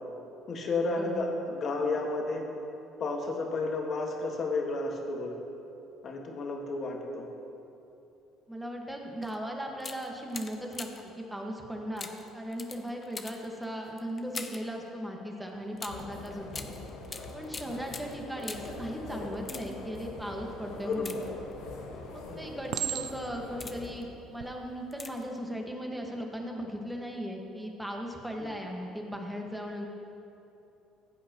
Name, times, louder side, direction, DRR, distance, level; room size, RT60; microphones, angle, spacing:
voice 1, 0.5-2.4 3.0-5.4 6.0-7.3 20.8-21.2 22.3-22.6 28.4-28.5, left 3 dB, 50° left, 1 dB, 1.7 m, -32 dB
voice 2, 8.5-10.9 11.2-12.1 12.3-16.7 17.3-21.2 22.1-29.9, equal, 5° right, 1 dB, 1.6 m, -37 dB
sound 1, 9.2-9.4 9.8-11.2 12.0-14.7 15.8-18.8 19.3-20.0 20.9-21.8 22.4-22.7 23.2-24.0 24.9-25.4 25.6-25.7, left 4 dB, 30° left, 0.7 m, -44 dB
sound 2, 15.8-23.9, left 2 dB, 85° left, 1.4 m, -43 dB
Chink clink, 21.2-21.7 22.7-23.5 24.2-24.5, right 11 dB, 70° right, 0.5 m, -35 dB
15.0 x 8.4 x 3.0 m, 2.8 s
supercardioid pair, 85°, 0 cm